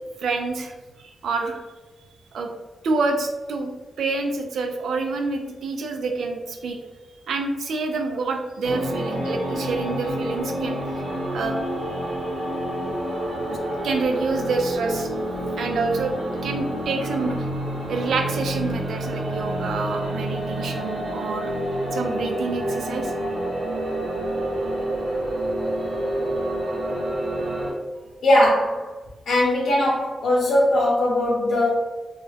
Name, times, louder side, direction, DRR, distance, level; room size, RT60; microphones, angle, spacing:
voice 1, 0.2-1.6 2.3-2.5 2.8-3.7 4.0-6.8 7.3-10.8 11.3-11.6 13.5-13.6 13.8-15.1 15.6-17.5 17.9-21.5 21.9-23.1, right 3 dB, 80° right, 4 dB, 0.3 m, -27 dB
sound 1, 8.6-27.7, right 1 dB, 65° right, 0.8 m, -28 dB
voice 2, 28.2-28.9 29.3-31.7, left 1 dB, 75° left, -8 dB, 0.8 m, -20 dB
2.3 x 2.0 x 3.2 m, 1.2 s
wide cardioid pair, 165°, 0 cm